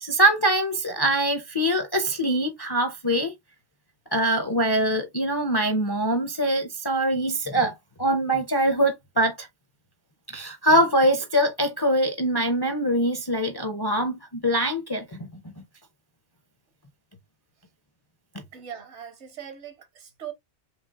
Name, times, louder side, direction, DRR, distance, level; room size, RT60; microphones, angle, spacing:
voice 1, 0.0-3.3 4.1-7.7 8.0-9.5 10.3-15.6, right 1 dB, 30° left, 0.4 m, -23 dB
voice 2, 18.5-20.3, right 9 dB, 70° right, 1.2 m, -40 dB
4.9 x 3.1 x 2.3 m
omnidirectional pair, 1.2 m